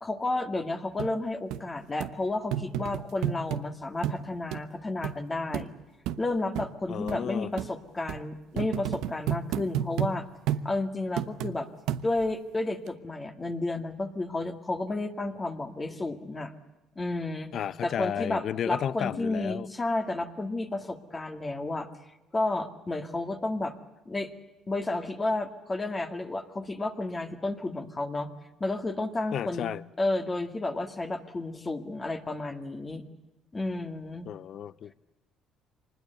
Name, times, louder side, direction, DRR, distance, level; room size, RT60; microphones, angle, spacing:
voice 1, 0.0-5.7 6.2-10.3 10.6-11.7 12.0-16.5 17.0-17.6 17.8-21.9 22.3-23.7 24.1-24.3 24.7-28.3 28.6-29.7 30.0-33.0 33.5-34.3, left 2 dB, 25° left, 2.0 m, -31 dB
sound 1, 1.0-1.1 1.5-1.6 2.0-2.1 2.5-3.6 4.0-4.2 4.5-4.6 5.0-5.2 5.5-5.7 6.1-6.2 6.5-6.7 7.1-7.2 7.6-7.7 8.1-8.2 8.6-10.1 10.5-10.7 11.2-11.5 11.9-12.3 12.9-13.0, right 11 dB, 85° right, 1.0 m, -31 dB
voice 2, 6.9-7.5 17.5-19.7 29.3-29.8 34.3-34.9, left 9 dB, 55° left, 0.7 m, -32 dB
24.5 x 20.5 x 8.1 m
cardioid pair, 100°, 0 cm